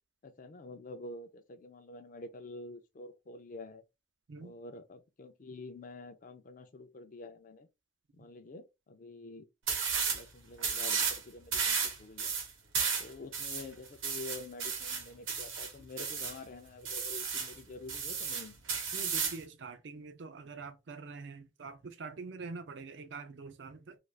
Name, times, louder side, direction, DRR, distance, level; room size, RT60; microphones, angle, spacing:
voice 1, 0.2-3.8 4.4-7.7 8.1-9.5 10.1-12.3 13.0-18.6, left 2 dB, 45° left, 0.4 m, -47 dB
sound 1, 9.7-10.2 10.6-11.2 11.5-16.4 16.9-17.5 17.9-19.4, right 6 dB, 85° right, 0.9 m, -33 dB
voice 2, 18.9-24.0, right 4 dB, 60° right, 0.5 m, -45 dB
2.4 x 2.4 x 3.2 m
head